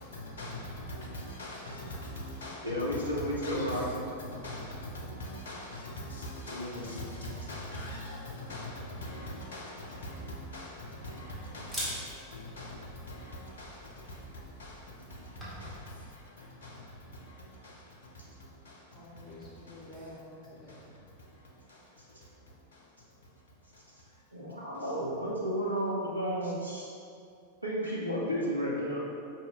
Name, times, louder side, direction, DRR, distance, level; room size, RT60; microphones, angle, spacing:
voice 1, 0.9-2.6 3.4-3.9 4.4-4.7 5.2-8.7 9.0-10.2 10.5-10.7 11.0-11.1 11.5-11.9 12.6-12.7 13.6-13.7 14.6-14.7 15.6-15.7, left 1 dB, 65° left, -2 dB, 0.3 m, -40 dB
voice 2, 2.6-4.0 6.5-7.1 24.3-26.9 27.6-29.0, equal, 85° right, -5 dB, 0.4 m, -32 dB
Camera, 9.9-15.8, equal, 10° right, 1.2 m, -44 dB
voice 3, 18.9-21.0, left 1 dB, 15° left, -6 dB, 0.7 m, -49 dB
4.8 x 2.6 x 2.3 m, 2.4 s
figure-of-eight pair, 90°, 0 cm